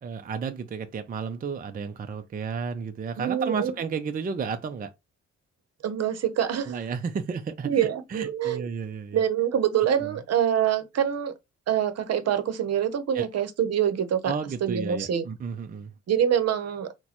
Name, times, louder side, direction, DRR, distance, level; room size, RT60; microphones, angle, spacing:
voice 1, 0.0-4.9 6.7-9.2 13.1-13.3 14.2-15.9, right 6 dB, 30° right, 0.5 m, -32 dB
voice 2, 3.2-3.7 5.8-6.7 7.6-8.7 9.1-11.3 11.7-14.3 14.6-15.2 16.1-16.9, right 9 dB, 55° right, 0.8 m, -25 dB
6.0 x 2.2 x 2.9 m
cardioid pair, 90°, 30 cm